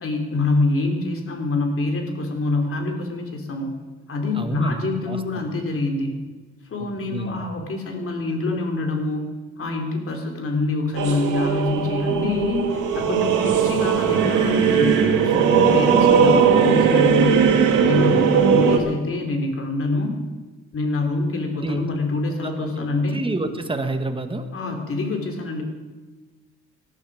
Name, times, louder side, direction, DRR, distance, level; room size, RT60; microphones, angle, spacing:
voice 1, 0.0-3.8 4.1-6.1 6.7-9.3 9.6-15.0 15.2-17.6 17.8-20.2 20.7-23.2 24.5-25.6, left 2 dB, 45° left, 3 dB, 3.7 m, -25 dB
voice 2, 4.3-4.8 5.1-5.4 7.1-7.4 21.6-21.9 22.6-22.7 23.1-24.4, right 2 dB, 15° right, 6 dB, 1.8 m, -28 dB
sound 1, 11.0-18.8, right 6 dB, 90° right, 1.9 m, -18 dB
19.0 x 12.0 x 5.1 m, 1.3 s
cardioid pair, 90°, 30 cm